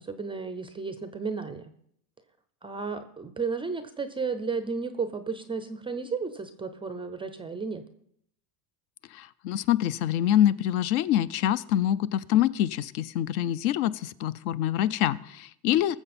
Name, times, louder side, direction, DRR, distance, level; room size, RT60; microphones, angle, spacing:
voice 1, 0.0-1.7 2.6-7.8, right 4 dB, 10° right, 10 dB, 0.4 m, -33 dB
voice 2, 9.1-16.0, left 12 dB, 65° left, 16 dB, 0.7 m, -25 dB
20.0 x 7.2 x 4.2 m, 0.70 s
supercardioid pair, 125°, 48 cm